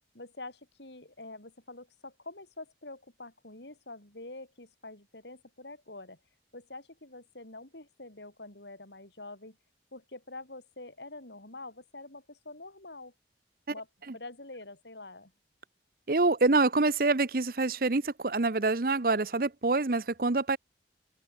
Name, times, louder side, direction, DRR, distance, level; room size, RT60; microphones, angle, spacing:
voice 1, 0.1-6.2 6.5-9.6 9.9-13.1 13.7-13.9 14.1-15.3, left 2 dB, 80° left, 6.1 m, -46 dB
voice 2, 16.1-20.6, right 3 dB, 55° right, 0.9 m, -26 dB
head